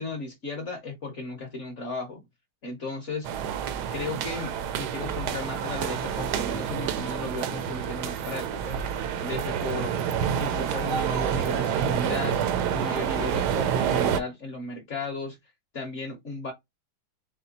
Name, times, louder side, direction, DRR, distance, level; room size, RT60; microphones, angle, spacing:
voice 1, 0.0-2.2 2.6-3.3 3.9-8.8 9.2-9.9 10.4-12.4 12.7-15.4 15.7-16.5, left 3 dB, 45° left, 1.0 m, -35 dB
sound 1, 3.2-14.2, right 8 dB, 80° right, 0.9 m, -28 dB
4.2 x 3.5 x 2.8 m
omnidirectional pair, 2.3 m